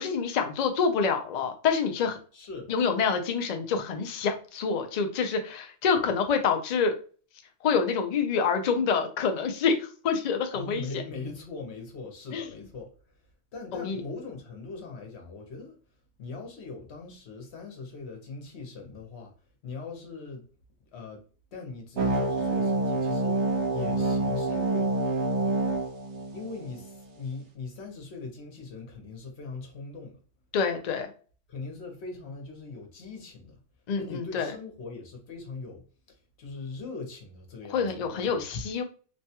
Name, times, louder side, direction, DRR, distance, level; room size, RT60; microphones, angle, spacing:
voice 1, 0.0-2.2 2.7-6.9 7.6-10.8 12.3-12.5 13.7-14.0 30.5-31.1 33.9-34.5 37.7-38.8, left 5 dB, 80° left, 0.3 m, -27 dB
voice 2, 2.3-2.7 10.5-12.9 13.5-15.8 16.2-19.3 19.6-20.5 20.9-21.2 21.5-23.4 23.7-24.9 26.3-30.2 31.5-33.6 34.0-38.6, left 3 dB, 60° left, 1.1 m, -41 dB
sound 1, 22.0-27.0, right 2 dB, 70° right, 1.0 m, -27 dB
3.1 x 2.2 x 2.8 m
omnidirectional pair, 1.3 m